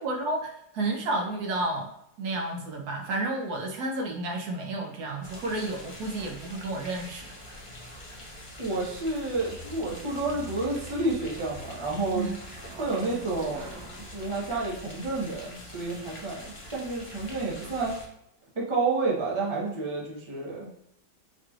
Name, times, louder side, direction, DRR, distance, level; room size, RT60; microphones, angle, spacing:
voice 1, 0.0-1.9 2.2-7.3 12.1-12.3, right 2 dB, 70° right, 1 dB, 1.1 m, -31 dB
sound 1, 5.2-18.1, left 1 dB, 35° left, 0.4 m, -45 dB
voice 2, 8.6-12.3 12.8-18.0 18.5-20.7, right 3 dB, 30° right, -4 dB, 0.5 m, -30 dB
sound 2, 9.3-14.3, right 1 dB, 90° right, 1.6 m, -46 dB
4.7 x 3.0 x 2.3 m, 0.76 s
omnidirectional pair, 1.9 m